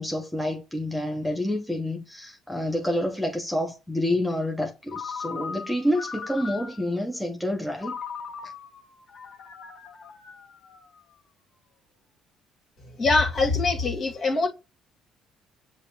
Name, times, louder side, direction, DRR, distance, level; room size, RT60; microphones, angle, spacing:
voice 1, 0.0-8.0 8.4-8.5, left 1 dB, ahead, 0.8 m, -28 dB
Ringtone, 4.9-7.0 7.8-11.2, left 5 dB, 60° left, 1.3 m, -39 dB
voice 2, 13.0-14.5, left 3 dB, 45° left, 1.9 m, -23 dB
6.7 x 2.8 x 2.8 m
cardioid pair, 95°, 0 cm